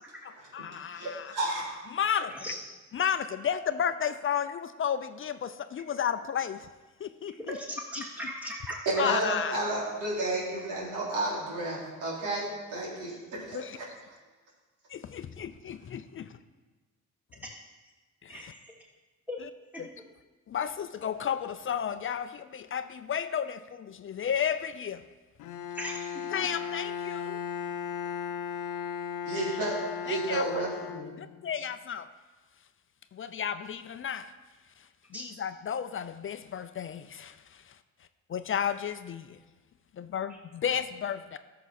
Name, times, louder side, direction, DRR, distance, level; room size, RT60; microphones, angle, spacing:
voice 1, 0.2-1.3 1.9-2.5 2.9-6.7 7.0-7.6 9.0-9.6 13.5-13.8 14.9-16.3 18.2-18.5 19.4-19.5 19.8-19.9 20.5-25.0 26.3-27.4 30.1-30.5 31.2-32.1 33.1-34.3 34.8-37.8 38.3-39.4 39.9-41.4, left 8 dB, 45° left, 11 dB, 0.5 m, -33 dB
voice 2, 0.9-1.7 8.9-13.6 29.2-29.8 30.0-31.0, right 2 dB, 90° right, -5 dB, 3.7 m, -31 dB
voice 3, 7.5-8.9 18.3-18.7 19.3-19.4 19.7-19.8 25.7-26.2 35.1-35.3, equal, 5° right, -4 dB, 2.8 m, -38 dB
Bowed string instrument, 25.4-31.6, left 7 dB, 85° left, 0.7 m, -36 dB
13.0 x 6.9 x 4.2 m, 1.3 s
cardioid pair, 90°, 30 cm